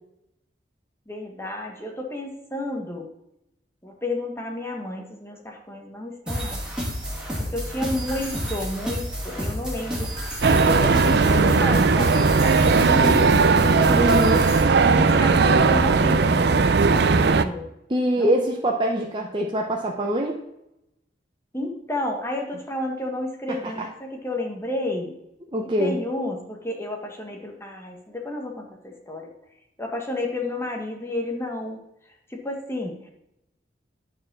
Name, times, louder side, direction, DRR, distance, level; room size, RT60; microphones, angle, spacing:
voice 1, 1.1-3.1 3.8-6.6 7.5-10.1 10.6-14.1 14.9-17.7 18.2-18.3 21.5-25.1 25.6-29.3 29.8-31.8 32.3-33.1, left 1 dB, 15° left, 1 dB, 1.5 m, -31 dB
sound 1, 6.3-14.6, equal, 5° right, 2.6 m, -30 dB
sound 2, 10.4-17.5, right 4 dB, 60° right, 0.5 m, -18 dB
voice 2, 14.0-14.5 17.9-20.3 23.5-23.9 25.5-26.0, right 1 dB, 25° right, 0 dB, 0.8 m, -24 dB
9.7 x 4.9 x 6.2 m, 0.83 s
head